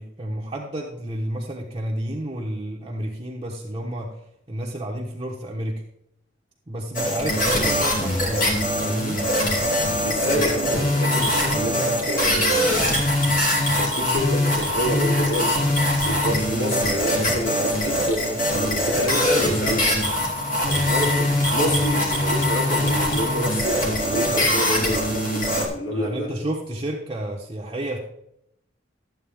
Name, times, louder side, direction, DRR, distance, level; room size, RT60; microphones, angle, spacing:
voice 1, 0.0-4.1 4.5-5.8 6.7-9.2 25.9-28.0, right 1 dB, 25° right, -4 dB, 1.2 m, -31 dB
sound 1, 6.9-25.7, left 1 dB, 45° left, 2.8 m, -22 dB
voice 2, 10.0-12.9 13.7-20.0 20.7-26.4, equal, 85° left, -1 dB, 3.2 m, -28 dB
13.0 x 8.3 x 3.5 m, 0.77 s
head